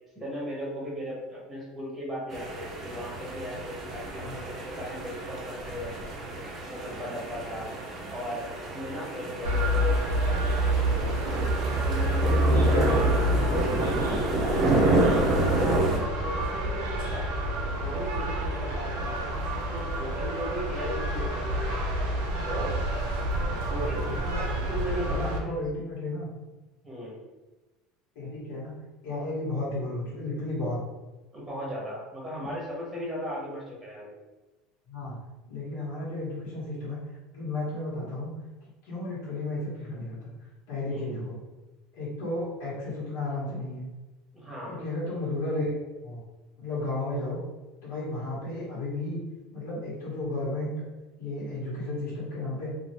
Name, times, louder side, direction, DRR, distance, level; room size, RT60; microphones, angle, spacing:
voice 1, 0.1-6.2 6.7-7.7 8.1-11.2 11.7-13.0 13.5-21.9 22.5-22.7 23.7-24.1 24.4-25.5 26.8-27.2 31.3-34.1 40.9-41.1 44.3-44.8, equal, 5° right, -6 dB, 0.9 m, -37 dB
sound 1, 2.3-16.0, right 2 dB, 25° right, 0.5 m, -29 dB
sound 2, 9.4-25.4, right 1 dB, 75° right, 0.6 m, -28 dB
voice 2, 23.5-24.5 25.0-26.3 28.1-28.8 29.0-30.8 34.9-35.2 35.5-37.0 37.3-38.3 38.8-40.3 40.7-41.4 41.9-43.8 44.6-46.2 46.6-47.4 47.8-49.2 49.5-50.7 51.2-52.7, left 2 dB, 85° left, -9 dB, 1.3 m, -33 dB
2.8 x 2.4 x 2.8 m, 1.1 s
cardioid pair, 170°, 0 cm